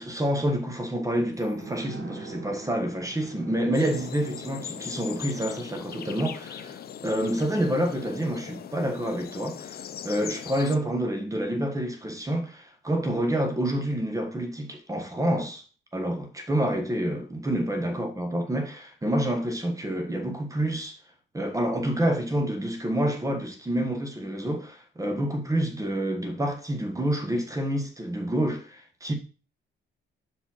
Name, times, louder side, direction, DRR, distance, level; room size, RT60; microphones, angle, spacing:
voice 1, 0.0-15.6 15.9-21.0 21.3-29.1, right 1 dB, 15° right, 1.4 m, -28 dB
sound 1, 1.4-10.7 10.9-11.0, right 4 dB, 60° right, 2.2 m, -47 dB
sound 2, 3.7-10.8, left 9 dB, 50° left, 0.6 m, -40 dB
5.6 x 5.1 x 5.6 m
cardioid pair, 90°, 20 cm